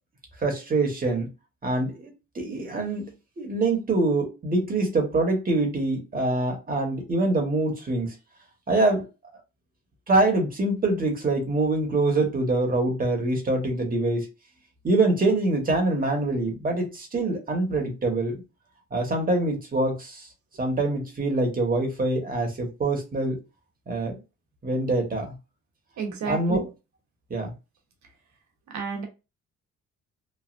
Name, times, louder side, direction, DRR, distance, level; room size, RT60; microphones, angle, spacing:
voice 1, 0.4-1.3 1.6-8.1 8.7-9.1 10.1-14.3 14.8-18.3 18.9-20.3 20.6-23.4 23.9-24.2 24.6-25.3 26.3-26.7 27.3-27.5, right 2 dB, 30° right, 1.2 m, -25 dB
voice 2, 26.0-26.6 28.7-29.0, right 6 dB, 70° right, 1.1 m, -30 dB
3.2 x 2.3 x 2.5 m
cardioid pair, 90°, 30 cm